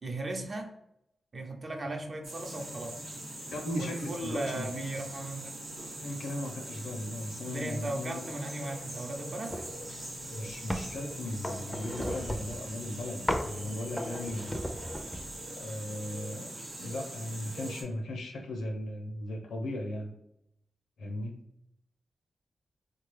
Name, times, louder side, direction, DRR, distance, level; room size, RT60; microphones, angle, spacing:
voice 1, 0.0-0.7 1.3-3.1 3.7-5.6 7.4-9.5, right 2 dB, 45° right, 3 dB, 0.7 m, -37 dB
sound 1, 2.2-17.8, right 1 dB, 75° right, 1.0 m, -42 dB
voice 2, 3.5-4.8 6.0-8.3 10.3-14.7 15.6-16.5 16.8-20.1 21.0-21.4, left 1 dB, 90° left, 4 dB, 0.6 m, -37 dB
sound 2, 9.5-9.8 10.2-11.0 11.4-12.6 13.3-13.6 14.0-15.3, equal, 10° left, 0.4 m, -35 dB
3.3 x 2.2 x 3.2 m, 0.79 s
cardioid pair, 50°, 0 cm